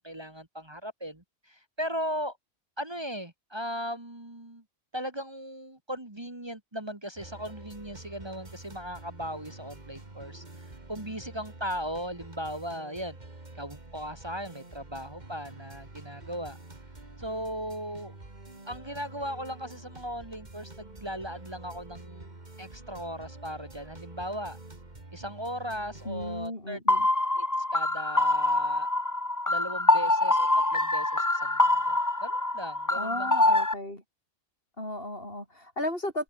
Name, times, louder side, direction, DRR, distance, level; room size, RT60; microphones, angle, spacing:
voice 1, 0.0-2.4 2.8-4.6 4.9-13.2 13.6-16.6 17.2-18.1 18.7-22.3 22.6-24.6 25.1-26.8 27.4-27.5 27.7-28.9 29.5-33.3, equal, 25° right, 2.3 m, -37 dB
sound 1, 7.2-26.5, right 2 dB, 40° right, 3.0 m, -47 dB
voice 2, 26.0-27.1 32.9-34.0 34.8-36.2, left 1 dB, 60° left, 7.8 m, -35 dB
sound 2, 26.9-33.7, left 2 dB, 15° left, 1.4 m, -25 dB
omnidirectional pair, 1.1 m